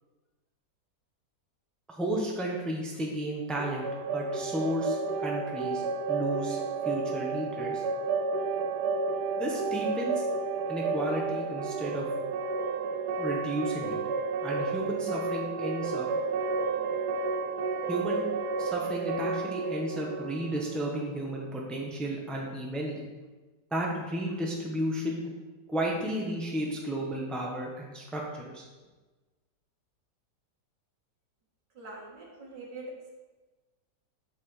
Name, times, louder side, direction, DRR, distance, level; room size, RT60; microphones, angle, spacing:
voice 1, 1.9-6.6 6.8-7.8 9.3-10.3 10.7-12.0 13.2-14.0 14.4-16.1 17.9-18.3 18.6-23.1 23.7-25.2 25.7-28.6, right 1 dB, ahead, -2 dB, 0.9 m, -33 dB
sound 1, 3.6-21.4, right 4 dB, 75° right, 1.2 m, -31 dB
voice 2, 31.7-33.1, right 2 dB, 90° right, -3 dB, 2.3 m, -43 dB
8.3 x 6.8 x 3.3 m, 1.2 s
omnidirectional pair, 1.8 m